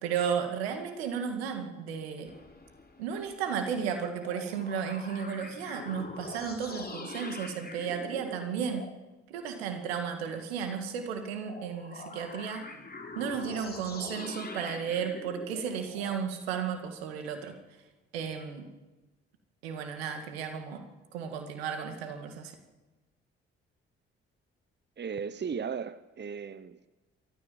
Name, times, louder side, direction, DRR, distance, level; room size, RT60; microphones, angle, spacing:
voice 1, 0.0-2.3 3.0-8.8 9.3-12.7 13.1-17.5 18.1-18.7 19.6-20.8 21.1-22.5, right 7 dB, 85° right, 6 dB, 2.3 m, -34 dB
sound 1, 2.3-3.9 4.2-9.0 11.4-16.2, left 3 dB, 30° left, 3.4 m, -44 dB
voice 2, 25.0-26.9, right 6 dB, 35° right, 14 dB, 1.1 m, -36 dB
27.5 x 14.0 x 7.4 m, 1.1 s
hypercardioid pair, 40°, 30 cm